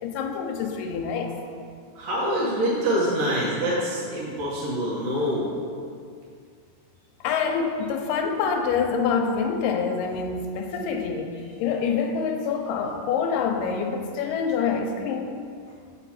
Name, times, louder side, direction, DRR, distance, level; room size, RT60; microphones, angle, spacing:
voice 1, 0.0-1.3 7.2-15.3, left 6 dB, 85° left, 3 dB, 2.2 m, -26 dB
voice 2, 2.0-5.5, equal, 60° right, -7 dB, 1.8 m, -25 dB
8.4 x 3.0 x 5.9 m, 2.2 s
omnidirectional pair, 3.9 m